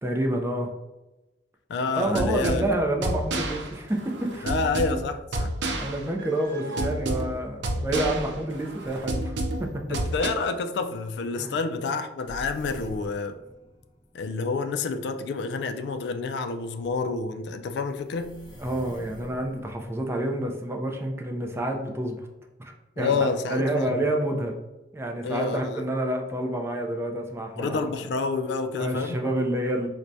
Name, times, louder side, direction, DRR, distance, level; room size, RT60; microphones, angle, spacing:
voice 1, 0.0-0.7 1.9-4.5 5.8-10.0 11.4-11.5 18.6-22.2 22.6-24.5 24.9-27.8 28.8-29.9, right 1 dB, 15° right, 2 dB, 0.4 m, -28 dB
voice 2, 1.7-2.6 4.4-5.5 9.9-13.3 14.1-18.4 23.0-24.0 25.2-25.8 27.6-29.2, left 4 dB, 65° left, 7 dB, 0.3 m, -29 dB
sound 1, 2.0-10.3, right 1 dB, 80° right, 0.5 m, -30 dB
sound 2, 6.4-6.5 7.1-7.2 7.7-10.3 12.3-14.6 16.8-16.9 17.9-20.2, equal, 25° left, 0.8 m, -45 dB
4.5 x 2.2 x 2.6 m, 1.0 s
head